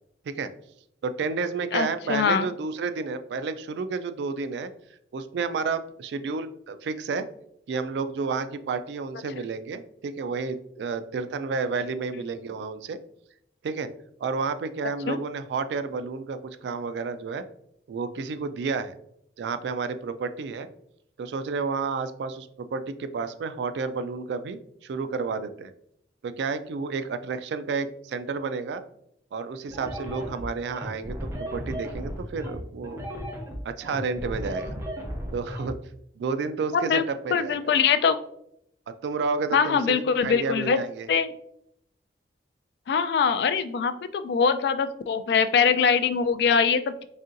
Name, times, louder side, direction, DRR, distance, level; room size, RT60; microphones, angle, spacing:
voice 1, 1.0-4.7 5.1-7.3 7.7-13.0 13.6-13.9 14.2-17.4 17.9-18.9 19.4-20.7 21.2-25.7 26.2-28.8 29.3-33.0 33.6-34.7 35.3-35.7 36.2-37.6 39.0-41.1, right 4 dB, 75° right, 11 dB, 0.3 m, -31 dB
voice 2, 1.7-2.5 15.1-15.2 36.7-37.0 37.3-38.2 39.5-40.8 41.1-41.3 42.9-47.0, left 6 dB, 70° left, 12 dB, 0.3 m, -23 dB
sound 1, 29.7-35.7, equal, 15° right, 0.7 m, -35 dB
4.1 x 3.6 x 2.5 m, 0.74 s
head